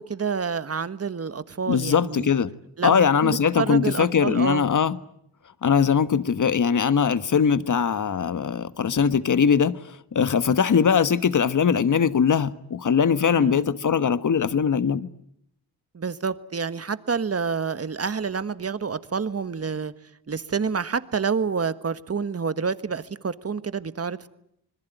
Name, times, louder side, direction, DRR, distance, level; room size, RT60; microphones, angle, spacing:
voice 1, 0.0-2.3 2.8-4.7 13.3-13.7 15.9-19.9 20.3-24.3, right 5 dB, 35° right, 1.4 m, -28 dB
voice 2, 1.7-2.5 2.8-5.0 5.6-15.1, left 6 dB, 50° left, 1.4 m, -21 dB
26.5 x 21.0 x 9.2 m
cardioid pair, 70°, 40 cm